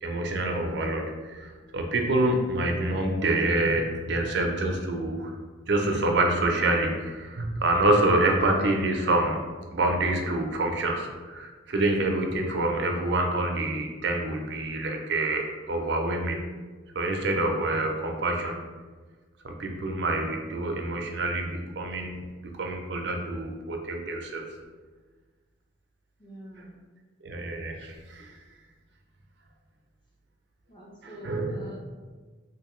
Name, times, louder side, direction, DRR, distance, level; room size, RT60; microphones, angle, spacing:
voice 1, 0.0-5.3 5.7-9.4 9.7-16.4 17.0-18.6 19.4-24.5 27.2-28.3 31.0-31.7, right 2 dB, 55° right, 2 dB, 0.4 m, -27 dB
voice 2, 26.2-26.7 30.7-31.8, right 1 dB, 25° left, -4 dB, 0.7 m, -45 dB
3.6 x 2.6 x 3.0 m, 1.4 s
head